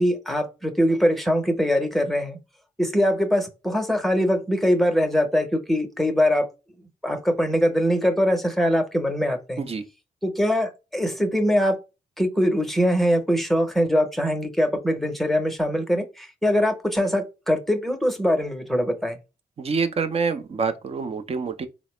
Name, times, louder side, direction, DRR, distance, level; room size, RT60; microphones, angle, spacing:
voice 1, 0.0-2.4 2.8-6.5 7.0-9.7 10.2-11.8 12.2-19.2, equal, ahead, 0.8 m, -22 dB
voice 2, 19.6-21.7, right 5 dB, 40° right, 0.6 m, -26 dB
3.9 x 2.0 x 3.1 m
cardioid pair, 70°, 15 cm